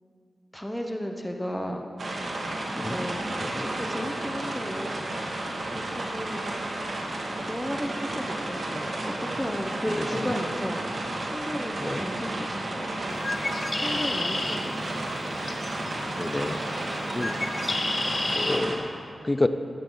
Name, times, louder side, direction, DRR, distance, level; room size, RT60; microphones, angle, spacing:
voice 1, 0.5-1.9 2.9-3.3 3.6-4.9 5.7-6.5 7.4-10.8 11.2-12.9 13.7-15.0, equal, 10° left, 3 dB, 1.0 m, -34 dB
sound 1, 2.0-18.8, right 1 dB, 60° right, 2.1 m, -32 dB
voice 2, 3.3-3.7 10.0-10.3 11.8-12.1 13.9-14.3 16.2-16.7 17.1-17.3 18.3-19.5, left 2 dB, 25° left, 11 dB, 0.6 m, -30 dB
Bird, 13.1-18.6, left 2 dB, 40° left, 1.1 m, -32 dB
16.0 x 12.0 x 4.0 m, 2.4 s
wide cardioid pair, 80°, 0 cm